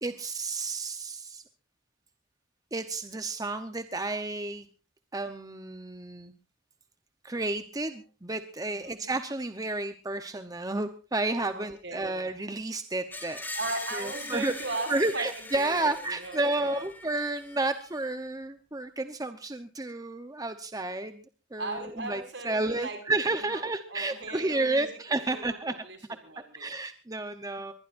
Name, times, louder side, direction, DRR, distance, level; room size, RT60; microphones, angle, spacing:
voice 1, 0.0-1.4 2.7-4.7 5.1-6.3 7.2-13.4 13.9-14.5 14.9-21.2 21.5-25.7 26.5-27.7, right 2 dB, 20° right, 8 dB, 0.9 m, -31 dB
voice 2, 8.7-9.0 11.5-12.1 13.5-16.8 21.6-25.0 25.3-26.0 26.2-26.7, right 3 dB, 65° right, 6 dB, 6.0 m, -38 dB
Screech, 13.1-18.1, left 2 dB, 10° left, 2.5 m, -42 dB
22.5 x 20.0 x 2.6 m, 0.36 s
head